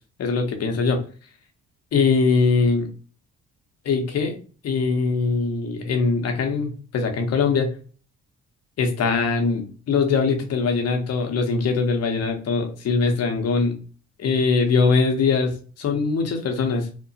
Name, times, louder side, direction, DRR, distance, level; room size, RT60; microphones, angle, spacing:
voice 1, 0.2-1.0 1.9-2.9 3.8-4.4 4.6-7.7 8.8-13.8 14.2-16.9, left 4 dB, 55° left, 4 dB, 0.8 m, -22 dB
2.8 x 2.0 x 2.7 m, 0.38 s
cardioid pair, 90°, 30 cm